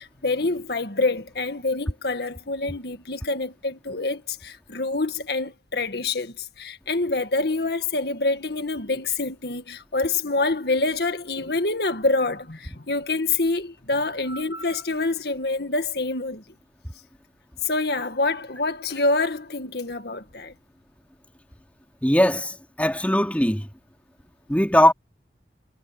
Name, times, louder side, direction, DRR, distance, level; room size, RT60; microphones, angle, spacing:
voice 1, 0.0-16.4 17.6-20.5, left 3 dB, 65° left, 1.9 m, -26 dB
voice 2, 22.0-23.7 24.5-24.9, left 1 dB, 10° left, 3.3 m, -20 dB
head